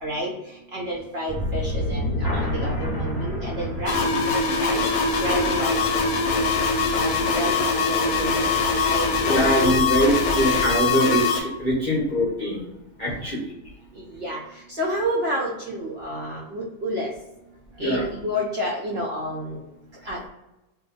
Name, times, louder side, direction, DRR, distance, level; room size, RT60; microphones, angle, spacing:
voice 1, 0.0-0.3 0.7-4.1 4.6-4.8 5.2-5.9 6.9-8.4 8.8-9.7 14.2-14.4 14.7-17.1 17.8-19.6 20.1-20.3, equal, 60° right, -4 dB, 0.6 m, -29 dB
sound 1, 1.3-10.8, left 1 dB, 15° left, 1.2 m, -31 dB
sound 2, 3.9-11.4, left 4 dB, 70° left, 1.0 m, -23 dB
voice 2, 9.3-12.6 13.0-13.5 17.8-18.1, equal, 45° left, -6 dB, 0.7 m, -23 dB
2.7 x 2.2 x 3.9 m, 0.95 s
omnidirectional pair, 1.7 m